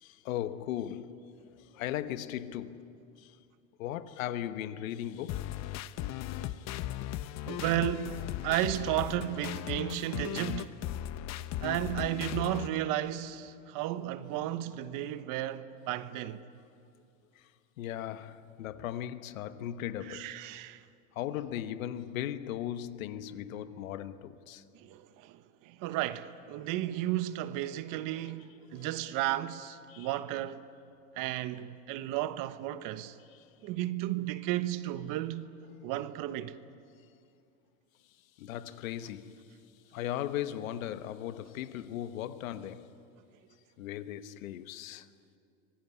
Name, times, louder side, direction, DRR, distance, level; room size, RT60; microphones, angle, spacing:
voice 1, 0.0-1.3 1.6-3.4 3.8-6.8 7.2-7.5 9.8-9.9 17.3-17.5 17.8-20.3 21.1-24.6 28.8-28.9 29.9-30.1 33.3-33.4 38.4-39.5 39.9-42.9 43.8-45.1, left 11 dB, 85° left, 1.3 m, -38 dB
sound 1, 5.3-12.7, left 13 dB, 45° left, 0.9 m, -37 dB
voice 2, 6.4-6.9 7.5-10.7 11.6-16.4 20.1-20.8 24.7-30.6 31.1-33.2 33.6-35.5 35.8-36.5, right 13 dB, 55° right, 1.2 m, -34 dB
25.5 x 18.0 x 9.9 m
supercardioid pair, 120°, 39 cm